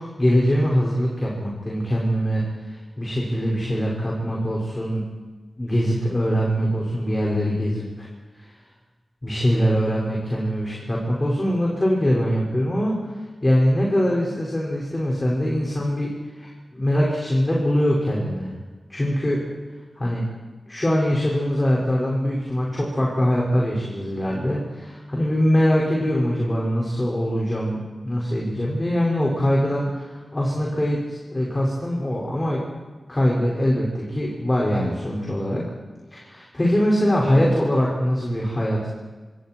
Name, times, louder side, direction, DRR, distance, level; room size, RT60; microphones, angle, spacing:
voice 1, 0.0-5.1 5.6-8.1 8.4-8.5 9.2-13.0 13.4-18.5 18.9-19.4 20.0-20.3 20.7-32.6 33.1-35.6 36.1-38.9, equal, 25° left, -3 dB, 6.1 m, -23 dB
26.5 x 26.5 x 4.8 m, 1.3 s
wide cardioid pair, 100°, 0 cm